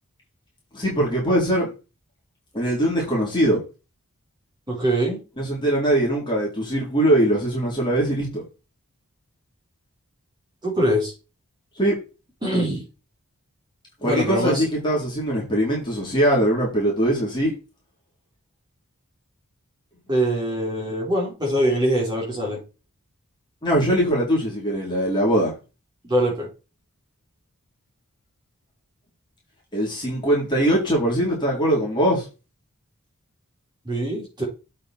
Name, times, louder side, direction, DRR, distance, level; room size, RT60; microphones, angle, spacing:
voice 1, 0.7-1.7 2.5-3.6 5.4-8.4 11.8-11.9 14.0-17.5 23.6-25.5 29.7-32.3, right 1 dB, 20° left, -4 dB, 3.8 m, -21 dB
voice 2, 4.7-5.2 10.6-11.1 12.4-12.8 14.0-14.7 20.1-22.6 26.0-26.5 33.9-34.4, right 1 dB, 20° right, -4 dB, 5.1 m, -23 dB
8.1 x 5.3 x 4.6 m, 0.31 s
head